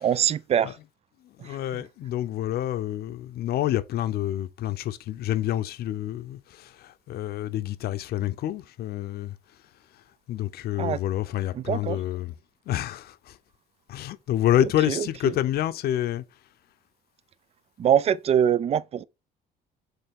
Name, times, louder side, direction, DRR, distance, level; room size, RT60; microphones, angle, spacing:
voice 1, 0.0-0.8 1.4-1.6 10.8-11.0 11.5-12.0 14.9-15.3 17.8-19.0, right 9 dB, 40° right, 0.4 m, -24 dB
voice 2, 1.4-9.3 10.3-12.3 12.7-13.4 13.9-16.2, left 12 dB, 65° left, 0.7 m, -28 dB
8.1 x 3.9 x 3.7 m
cardioid pair, 110°, 17 cm